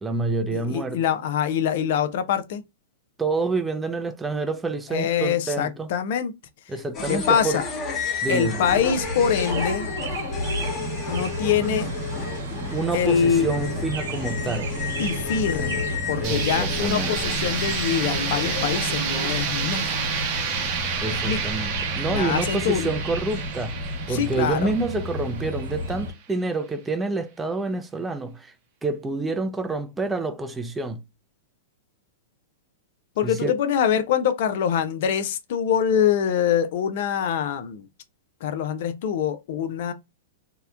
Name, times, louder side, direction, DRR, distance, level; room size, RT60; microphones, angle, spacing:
voice 1, 0.0-1.0 3.2-5.9 6.7-7.6 8.2-8.6 12.7-14.7 16.2-17.2 21.0-23.8 24.1-28.5 28.8-31.0 33.2-33.5, right 3 dB, 10° right, 0.4 m, -28 dB
voice 2, 0.5-2.6 4.9-6.3 7.1-7.7 8.3-9.9 11.1-11.9 12.9-13.5 15.0-20.1 21.3-21.4 22.1-22.9 24.1-24.7 33.2-37.9 38.4-39.9, left 8 dB, 60° left, 0.4 m, -24 dB
sound 1, 6.9-19.4, left 4 dB, 30° left, 0.9 m, -32 dB
sound 2, 8.6-26.1, equal, 75° right, 1.0 m, -31 dB
sound 3, 16.2-26.0, right 6 dB, 40° right, 0.8 m, -30 dB
2.8 x 2.1 x 2.3 m
hypercardioid pair, 120°, 0 cm